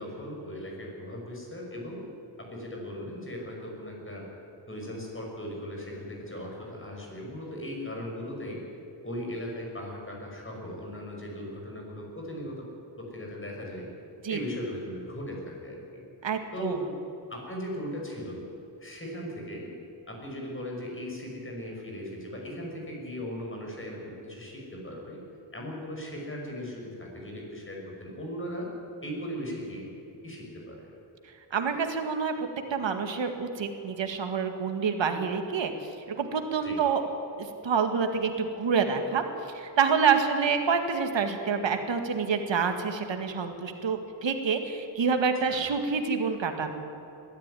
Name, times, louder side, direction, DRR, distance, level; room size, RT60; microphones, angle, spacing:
voice 1, 0.0-2.1 2.4-4.3 4.7-8.6 9.0-12.7 13.0-13.9 14.3-16.0 16.5-16.8 17.3-18.4 18.8-19.7 20.1-25.2 25.5-28.7 29.0-29.9 30.2-31.0 36.6-36.8 45.4-45.7, equal, 30° left, -1 dB, 6.4 m, -38 dB
voice 2, 16.2-16.8 31.5-37.0 37.4-39.2 39.5-46.7, right 6 dB, 85° right, 6 dB, 2.0 m, -27 dB
21.5 x 14.0 x 10.0 m, 2.9 s
wide cardioid pair, 115°, 44 cm